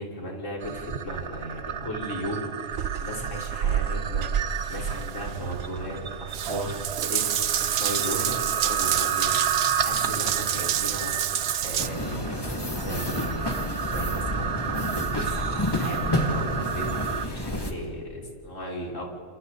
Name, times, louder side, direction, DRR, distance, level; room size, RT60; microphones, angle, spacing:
voice 1, 0.0-11.3 11.6-13.5 13.8-19.0, equal, 65° left, -1 dB, 4.7 m, -36 dB
sound 1, 0.6-17.3, right 7 dB, 50° right, 1.1 m, -32 dB
Water tap faucet / Bathtub (filling or washing) / Drip, 2.7-11.9, right 10 dB, 75° right, 1.1 m, -29 dB
sound 2, 11.8-17.7, left 1 dB, 15° left, 2.3 m, -30 dB
29.0 x 28.0 x 4.0 m, 2.4 s
omnidirectional pair, 1.4 m